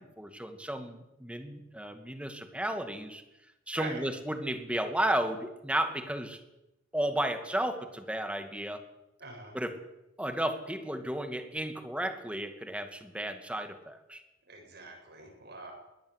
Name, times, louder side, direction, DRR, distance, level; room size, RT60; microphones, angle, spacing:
voice 1, 0.0-3.2 3.7-6.4 6.9-8.8 9.5-9.8 10.2-14.2, right 1 dB, 5° right, 7 dB, 2.3 m, -33 dB
voice 2, 9.2-9.6 14.5-15.7, right 3 dB, 60° right, 2 dB, 7.8 m, -43 dB
22.5 x 17.5 x 8.3 m, 0.92 s
head